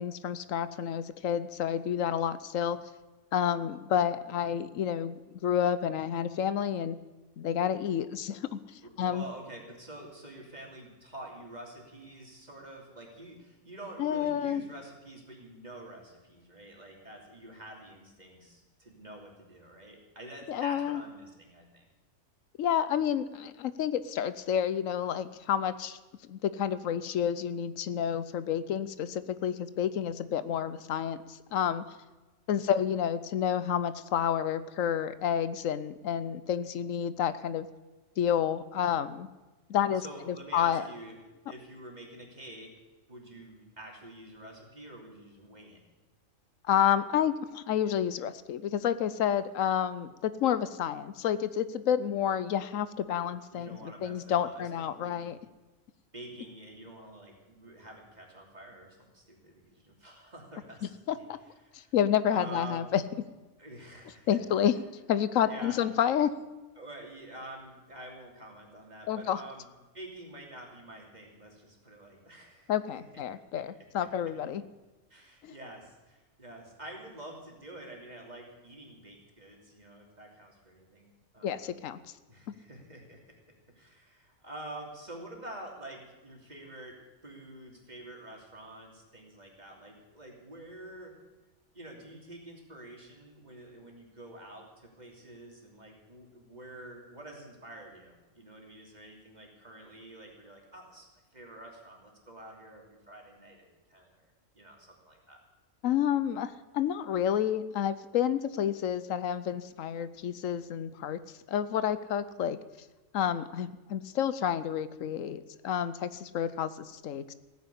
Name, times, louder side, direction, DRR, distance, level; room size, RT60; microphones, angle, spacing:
voice 1, 0.0-2.8 3.3-7.0 7.4-8.6 9.0-9.2 14.0-14.6 20.5-21.0 22.6-26.0 26.3-31.8 32.5-37.7 38.2-39.3 39.7-40.8 46.7-55.4 61.1-61.4 61.7-63.0 64.3-64.7 65.1-66.3 69.1-69.4 72.7-74.6 75.4-75.5 81.4-82.0 105.8-111.2 111.5-112.6 113.1-117.3, left 9 dB, 80° left, 15 dB, 1.1 m, -29 dB
voice 2, 8.8-21.9 32.6-32.7 39.9-41.1 41.4-42.7 43.1-45.8 53.5-55.2 56.1-61.3 61.6-61.9 62.3-62.9 63.6-64.4 65.4-65.8 66.8-69.7 69.9-72.7 73.1-73.2 73.5-73.6 74.0-74.1 75.1-81.7 82.3-83.2 83.7-86.9 87.2-91.1 91.7-101.1 101.3-105.4, right 1 dB, 30° right, 0 dB, 3.1 m, -47 dB
16.0 x 9.6 x 8.3 m, 1.2 s
omnidirectional pair, 1.3 m